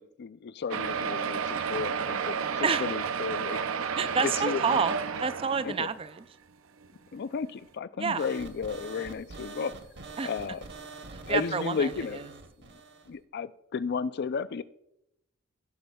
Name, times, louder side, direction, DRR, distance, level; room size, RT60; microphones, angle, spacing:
voice 1, 0.0-3.6 4.2-4.8 5.7-5.9 7.1-9.8 10.2-10.6 11.3-12.2 13.1-14.6, left 5 dB, 55° left, 15 dB, 0.4 m, -33 dB
sound 1, 0.7-6.2 6.8-6.9 7.2-7.3 7.6-7.7, right 6 dB, 85° right, 0.5 m, -31 dB
voice 2, 4.0-6.3 8.0-8.2 10.2-10.3 11.1-11.9, right 5 dB, 30° right, 13 dB, 0.4 m, -29 dB
sound 2, 8.2-13.1, right 3 dB, 60° right, 0.9 m, -45 dB
17.0 x 7.7 x 2.3 m, 0.79 s
head